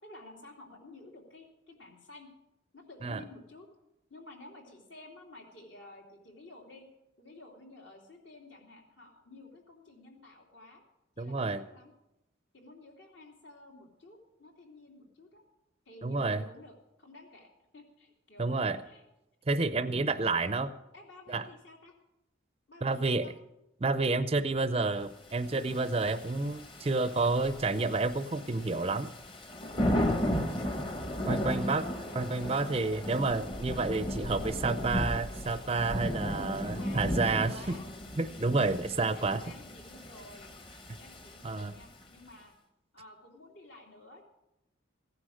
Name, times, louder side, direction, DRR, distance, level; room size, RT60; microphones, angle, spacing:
voice 1, 0.0-2.3 2.7-3.7 4.1-6.9 7.2-10.8 11.2-11.9 12.5-15.4 15.9-19.0 20.4-20.5 20.9-21.9 22.7-23.3 26.9-27.7 32.0-32.6 36.6-37.9 39.1-40.5 40.9-42.5 42.9-44.2, left 2 dB, 70° left, 1 dB, 2.7 m, -52 dB
voice 2, 11.2-11.6 16.0-16.4 18.4-18.8 19.5-20.7 21.3-21.4 22.8-23.3 23.8-29.1 31.2-31.9 32.2-37.8 38.2-39.4 41.4-41.7, right 3 dB, 30° right, 12 dB, 0.5 m, -29 dB
Thunder / Rain, 25.4-42.0, left 1 dB, 25° left, 1.1 m, -35 dB
15.5 x 9.9 x 6.4 m, 0.90 s
head